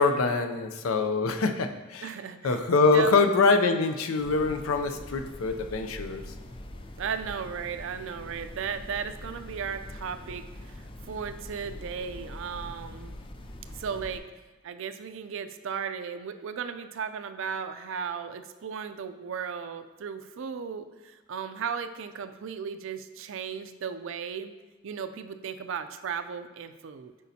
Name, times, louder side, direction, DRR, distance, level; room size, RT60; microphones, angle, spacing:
voice 1, 0.0-2.1 2.4-6.2, left 4 dB, 85° left, 7 dB, 0.5 m, -24 dB
voice 2, 2.0-3.2 7.0-13.2 13.7-14.2 14.6-24.5 24.8-27.1, right 6 dB, 70° right, 9 dB, 0.4 m, -36 dB
sound 1, 4.2-14.2, left 1 dB, 25° left, 0.4 m, -43 dB
8.2 x 5.0 x 2.8 m, 1.2 s
head